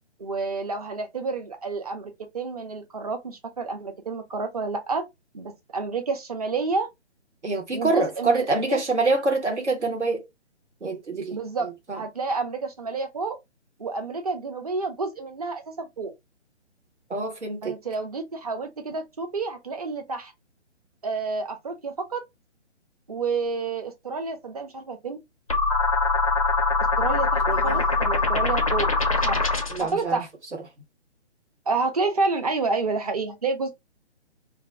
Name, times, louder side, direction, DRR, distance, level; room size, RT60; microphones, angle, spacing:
voice 1, 0.2-5.0 5.3-6.9 7.7-8.8 11.3-13.4 13.8-16.1 17.6-20.3 21.0-22.2 23.1-25.2 27.0-28.9 29.2-29.4 29.8-30.3 31.7-33.7, right 4 dB, 35° right, 0.5 m, -29 dB
voice 2, 7.4-10.2 10.8-11.4 11.9-12.0 17.1-17.7 27.5-27.8 29.7-30.2, right 3 dB, 80° right, 1.1 m, -25 dB
sound 1, 25.5-29.9, left 3 dB, 35° left, 0.4 m, -23 dB
2.4 x 2.1 x 3.3 m
figure-of-eight pair, 140°, 34 cm